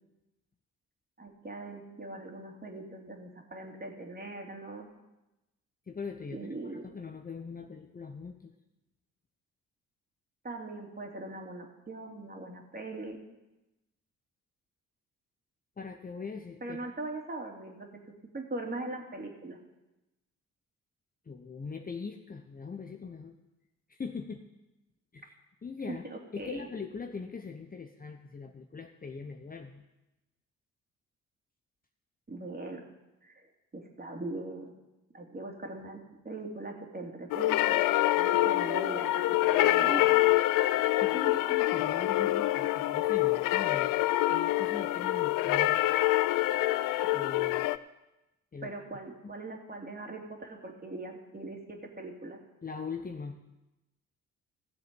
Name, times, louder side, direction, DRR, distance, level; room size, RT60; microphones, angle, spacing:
voice 1, 1.2-4.9 6.3-6.8 10.4-13.2 16.6-19.6 25.9-26.7 32.3-32.8 33.2-33.4 33.7-34.7 35.1-37.9 38.1-40.3 48.6-52.4, right 2 dB, 25° right, 1 dB, 2.7 m, -41 dB
voice 2, 5.9-6.5 6.8-8.5 15.8-16.9 21.3-23.4 23.9-24.4 25.1-25.3 25.6-26.1 26.3-29.8 41.0-44.0 44.3-45.9 47.0-47.7 48.5-48.7 49.2-49.3 52.6-53.4, left 5 dB, 25° left, 5 dB, 0.9 m, -41 dB
sound 1, 37.3-47.8, left 16 dB, 55° left, 0.5 m, -26 dB
16.0 x 7.8 x 5.3 m, 0.98 s
figure-of-eight pair, 40°, 38 cm